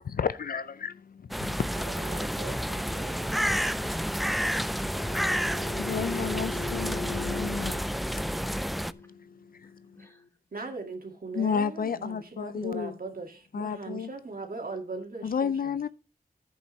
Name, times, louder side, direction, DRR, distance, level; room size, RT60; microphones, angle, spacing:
voice 1, 0.0-1.7 5.8-7.9 9.6-9.7 11.3-12.9 13.5-14.1 15.2-15.9, left 6 dB, 65° left, 0.4 m, -31 dB
sound 1, 1.3-8.9, equal, ahead, 0.4 m, -30 dB
voice 2, 1.7-3.5 10.5-15.9, right 3 dB, 65° right, 2.0 m, -40 dB
voice 3, 3.0-4.9 9.0-9.1 9.6-10.3, left 1 dB, 15° left, 3.5 m, -49 dB
sound 2, 4.5-10.0, left 3 dB, 50° left, 5.0 m, -41 dB
11.0 x 8.0 x 3.1 m
wide cardioid pair, 60°, 16 cm